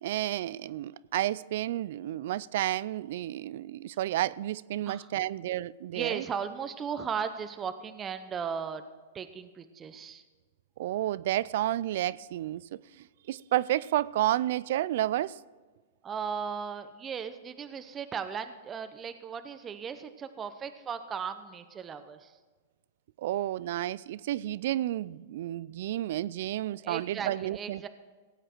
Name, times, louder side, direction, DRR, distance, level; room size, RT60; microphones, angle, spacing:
voice 1, 0.0-6.2 10.8-12.8 13.3-15.4 23.2-27.9, right 14 dB, 60° right, 0.4 m, -31 dB
voice 2, 4.9-5.2 5.9-8.8 9.1-10.2 16.0-22.4 26.8-27.9, right 7 dB, 20° right, 0.8 m, -37 dB
17.0 x 8.8 x 4.5 m
hypercardioid pair, 130°, 0 cm